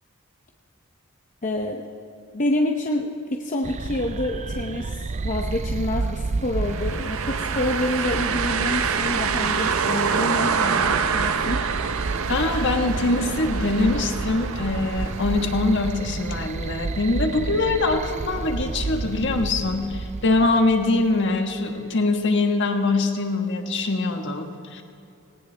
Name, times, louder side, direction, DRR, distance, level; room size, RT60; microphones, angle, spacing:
voice 1, 1.4-1.9 2.3-11.6, left 1 dB, 35° left, 1 dB, 0.8 m, -27 dB
sound 1, 3.6-21.6, right 3 dB, 30° right, 0.3 m, -31 dB
sound 2, 6.6-16.4, right 6 dB, 70° right, 0.7 m, -26 dB
voice 2, 12.3-24.8, left 2 dB, 55° left, 4 dB, 1.4 m, -23 dB
19.0 x 18.0 x 3.4 m, 2.7 s
head